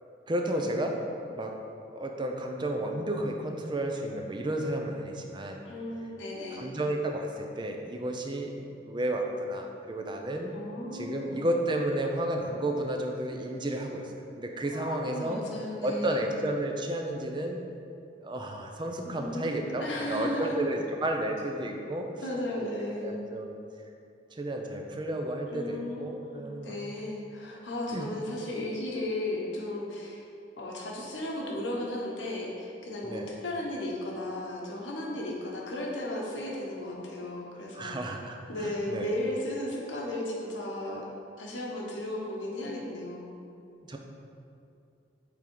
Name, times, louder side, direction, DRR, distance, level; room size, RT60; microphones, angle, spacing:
voice 1, 0.3-1.0 1.3-1.5 1.9-5.6 6.5-10.6 10.9-15.4 15.8-17.6 18.2-22.1 23.0-23.6 24.3-26.8 27.9-28.1 33.0-33.3 37.7-39.1 43.9-44.0, right 1 dB, 25° right, 2 dB, 0.5 m, -32 dB
voice 2, 5.6-6.7 10.5-11.4 14.7-16.3 19.1-20.6 22.2-23.2 25.5-30.2 30.6-38.2 38.5-41.1 41.4-43.4, left 1 dB, 85° left, -2 dB, 1.1 m, -35 dB
7.0 x 3.6 x 4.6 m, 2.5 s
head